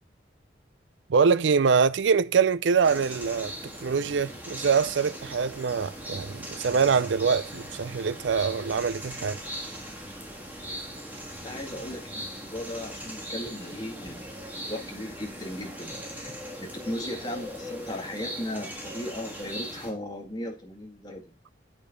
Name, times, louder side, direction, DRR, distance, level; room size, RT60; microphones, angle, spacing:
voice 1, 1.1-3.5 3.8-9.4, right 5 dB, 85° right, 0.4 m, -24 dB
sound 1, 2.8-19.9, equal, 10° right, 1.6 m, -39 dB
voice 2, 11.4-14.3 14.6-21.3, left 1 dB, 20° left, 1.7 m, -37 dB
8.5 x 5.3 x 5.1 m
head